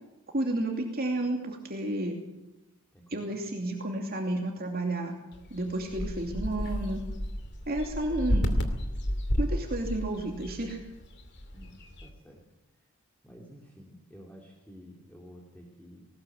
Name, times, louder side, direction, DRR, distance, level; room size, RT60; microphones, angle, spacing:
voice 1, 0.3-2.2 3.1-5.2 5.5-7.0 7.7-8.6 9.4-10.8, right 1 dB, 45° right, 2 dB, 2.7 m, -31 dB
voice 2, 2.9-3.5 11.5-12.4 12.7-12.9 13.2-16.1, equal, 5° left, -1 dB, 3.0 m, -51 dB
sound 1, 5.3-12.1, equal, 55° left, 2.6 m, -32 dB
20.0 x 19.0 x 8.0 m, 0.94 s
head